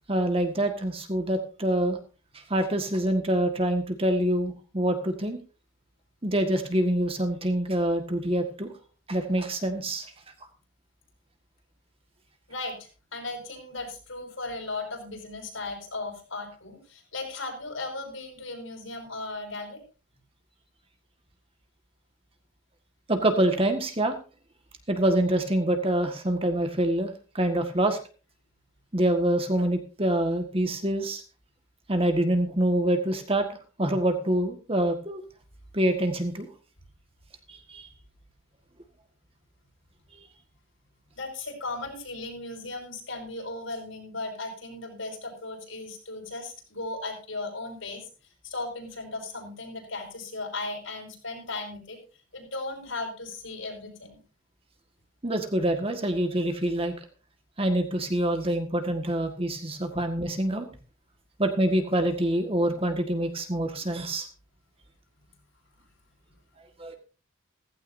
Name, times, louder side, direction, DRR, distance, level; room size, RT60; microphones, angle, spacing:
voice 1, 0.1-2.0 2.5-5.4 6.2-8.7 9.1-10.0 23.1-24.2 24.9-28.0 28.9-31.2 31.9-33.5 33.8-35.2 35.7-36.5 37.5-37.9 55.2-56.9 57.6-60.7 61.4-64.3 66.8-67.0, right 1 dB, 25° right, 6 dB, 1.7 m, -26 dB
voice 2, 12.5-19.8 41.1-48.1 48.4-52.0 52.3-54.2 59.9-60.0, left 2 dB, 70° left, 2 dB, 5.6 m, -36 dB
15.5 x 15.5 x 2.7 m, 0.34 s
head